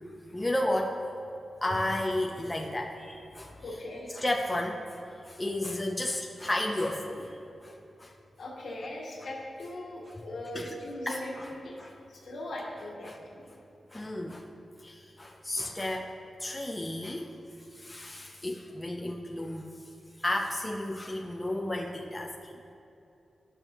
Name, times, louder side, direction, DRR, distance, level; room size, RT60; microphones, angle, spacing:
voice 1, 0.3-1.0 1.6-3.6 4.2-8.1 10.5-10.8 11.1-11.4 11.8-12.0 13.1-13.2 13.9-14.5 14.8-16.1 16.4-17.3 17.7-19.7 20.2-22.6, left 1 dB, 10° left, 0 dB, 0.4 m, -33 dB
voice 2, 3.5-4.2 8.4-11.8 12.1-13.5, left 1 dB, 70° left, -4 dB, 1.6 m, -40 dB
10.5 x 6.2 x 3.0 m, 2.8 s
wide cardioid pair, 140°, 0 cm